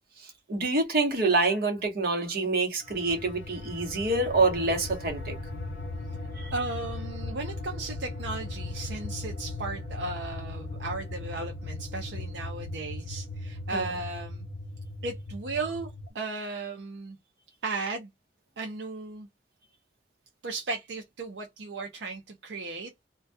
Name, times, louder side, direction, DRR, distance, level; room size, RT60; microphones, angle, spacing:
voice 1, 0.2-5.3 6.4-6.5 13.7-13.9, right 3 dB, 55° right, 0.9 m, -27 dB
sound 1, 2.8-16.1, left 2 dB, 85° left, 0.9 m, -38 dB
voice 2, 6.5-14.5 15.0-17.2 17.6-18.1 18.6-19.3 20.4-22.9, right 3 dB, 70° right, 0.5 m, -35 dB
2.2 x 2.2 x 2.5 m
head